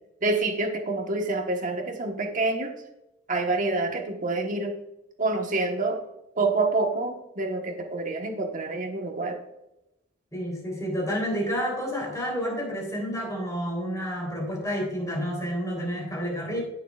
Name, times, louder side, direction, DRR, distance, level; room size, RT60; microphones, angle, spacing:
voice 1, 0.2-2.7 3.3-4.7 5.2-6.0 6.4-9.4, right 3 dB, 40° right, 3 dB, 1.2 m, -27 dB
voice 2, 10.3-16.6, equal, 15° left, -1 dB, 3.4 m, -30 dB
15.5 x 6.7 x 2.4 m, 0.91 s
head